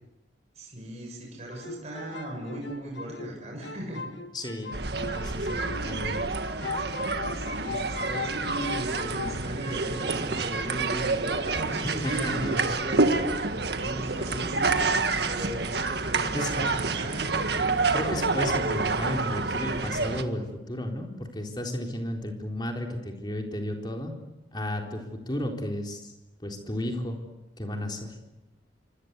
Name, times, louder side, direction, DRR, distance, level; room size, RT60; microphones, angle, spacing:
voice 1, 0.6-4.1 7.2-13.5 13.8-14.7 15.2-17.3, right 1 dB, 35° right, 0 dB, 7.0 m, -37 dB
sound 1, 1.5-6.3 6.6-9.4, left 4 dB, 70° left, 1.9 m, -38 dB
voice 2, 4.3-4.7 5.1-6.2 11.8-12.8 16.3-16.5 17.9-24.1 24.5-26.1 26.4-27.2 27.6-28.1, left 1 dB, 25° left, 2 dB, 4.1 m, -33 dB
sound 2, 4.7-20.2, right 3 dB, 60° right, 1.8 m, -28 dB
28.0 x 25.0 x 8.3 m, 1.0 s
head